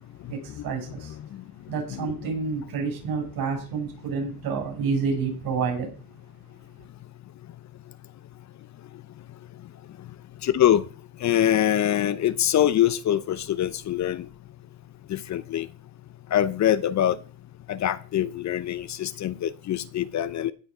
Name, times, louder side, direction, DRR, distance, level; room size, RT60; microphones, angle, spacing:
voice 1, 0.3-1.2 1.7-5.9, right 5 dB, 60° right, 7.4 m, -29 dB
voice 2, 10.4-10.8 11.2-14.3 15.1-15.7 16.3-17.2 17.7-20.5, left 11 dB, 45° left, 0.7 m, -23 dB
16.5 x 6.1 x 5.0 m
supercardioid pair, 100°, 41 cm